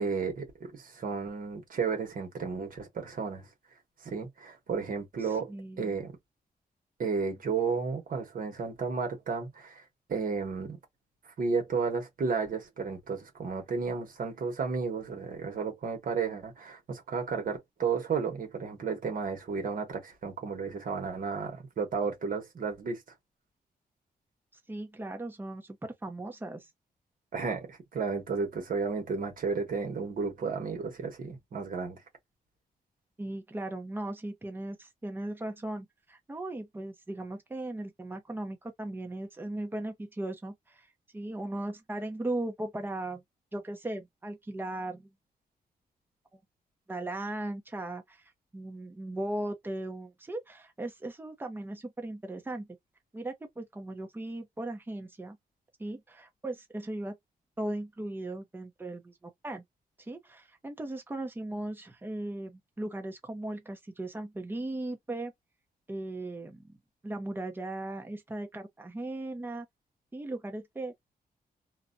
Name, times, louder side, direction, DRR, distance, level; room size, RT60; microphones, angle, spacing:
voice 1, 0.0-3.5 4.0-5.5 5.8-6.2 7.0-9.8 10.1-10.8 11.4-23.0 27.3-32.0, right 5 dB, 60° right, 1.2 m, -33 dB
voice 2, 5.2-6.0 24.7-26.7 33.2-40.9 41.1-43.2 43.5-45.1 46.9-52.7 53.1-55.4 55.8-57.2 57.6-59.6 60.0-65.3 65.9-66.8 67.0-69.7 70.1-70.9, right 1 dB, 15° right, 0.7 m, -37 dB
2.5 x 2.2 x 2.5 m
wide cardioid pair, 175°, 16 cm